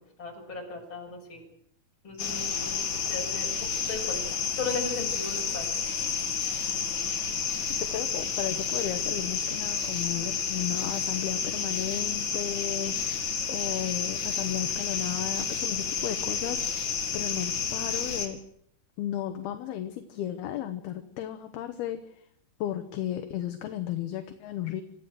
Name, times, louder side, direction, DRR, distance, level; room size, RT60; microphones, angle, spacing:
voice 1, 0.0-1.5 2.0-5.8, left 3 dB, 25° left, 0 dB, 7.1 m, -37 dB
sound 1, 2.2-18.3, left 6 dB, 45° left, 3.6 m, -30 dB
voice 2, 7.8-18.4 19.0-22.2 22.6-24.8, left 11 dB, 70° left, 8 dB, 2.8 m, -34 dB
26.5 x 14.5 x 7.9 m, 0.73 s
omnidirectional pair, 5.3 m